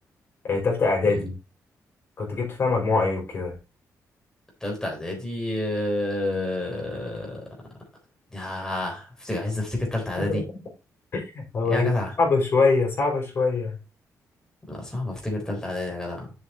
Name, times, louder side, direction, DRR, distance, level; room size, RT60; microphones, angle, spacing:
voice 1, 0.5-1.3 2.2-3.6 10.2-10.4 11.1-11.9 12.2-13.8, left 4 dB, 40° left, 0 dB, 4.9 m, -23 dB
voice 2, 4.6-7.4 8.3-10.4 11.7-12.1 14.7-16.3, left 1 dB, 10° left, 0 dB, 3.8 m, -29 dB
7.5 x 6.7 x 4.3 m, 0.29 s
wide cardioid pair, 160°, 6 cm